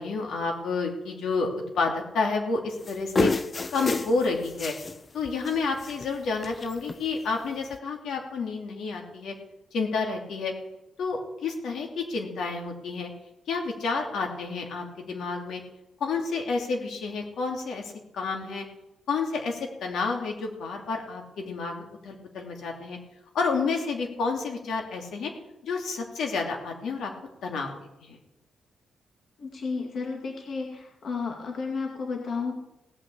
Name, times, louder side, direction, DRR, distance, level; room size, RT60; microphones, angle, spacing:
voice 1, 0.0-3.3 3.7-4.7 5.1-9.3 9.7-10.5 11.0-13.1 13.5-15.6 16.0-18.6 19.1-23.0 23.3-25.3 25.6-27.1 27.4-27.7 28.0-28.2, left 4 dB, 75° left, 2 dB, 2.7 m, -30 dB
sound 1, 2.8-5.0 5.3-5.5 5.8-6.2 6.4-7.0 7.7-7.8, left 4 dB, 30° left, 0.6 m, -29 dB
voice 2, 29.4-32.5, left 4 dB, 55° left, 1 dB, 2.2 m, -32 dB
18.0 x 6.0 x 8.3 m, 0.88 s
cardioid pair, 125°, 0 cm